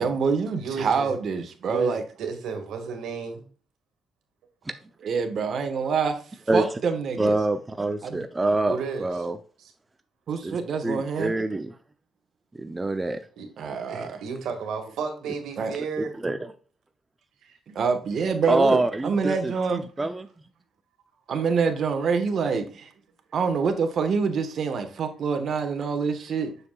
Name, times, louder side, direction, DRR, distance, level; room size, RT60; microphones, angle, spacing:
voice 1, 0.0-2.0 5.0-6.2 6.5-7.4 8.0-8.2 10.3-11.3 13.6-14.2 15.6-15.7 17.7-19.8 21.3-22.9 23.3-26.6, right 5 dB, 60° right, 1.3 m, -26 dB
voice 2, 0.6-1.1 1.6-3.4 8.6-9.1 13.4-13.5 13.9-16.2 17.4-17.6, right 5 dB, 80° right, 1.9 m, -33 dB
voice 3, 7.2-9.4 10.4-10.6 10.8-11.7 12.6-13.2 16.0-16.5 18.5-20.3, right 2 dB, 20° right, 0.6 m, -26 dB
6.9 x 6.7 x 2.4 m
cardioid pair, 90°, 0 cm